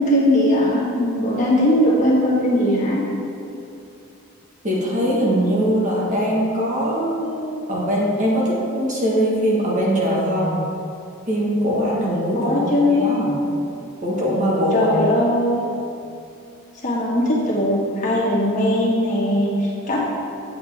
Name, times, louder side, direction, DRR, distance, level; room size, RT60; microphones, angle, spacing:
voice 1, 0.0-3.0 12.3-13.1 14.7-15.6 16.8-20.0, left 1 dB, 35° left, -6 dB, 1.7 m, -19 dB
voice 2, 4.6-10.6 11.3-13.4 14.0-14.9, equal, 35° right, -4 dB, 1.5 m, -21 dB
8.5 x 7.6 x 3.5 m, 2.6 s
head